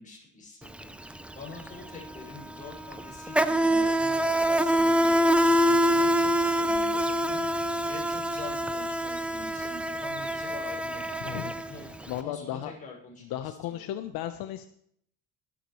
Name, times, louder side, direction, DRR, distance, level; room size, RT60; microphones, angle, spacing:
voice 1, 0.0-11.9 12.2-13.8, left 3 dB, 20° left, -2 dB, 6.2 m, -46 dB
Insect, 0.6-0.8 1.1-12.1, equal, 5° right, 0.5 m, -25 dB
voice 2, 11.2-12.7 13.2-14.7, left 12 dB, 70° left, 8 dB, 1.0 m, -36 dB
22.0 x 10.0 x 3.2 m, 0.67 s
cardioid pair, 150°, 37 cm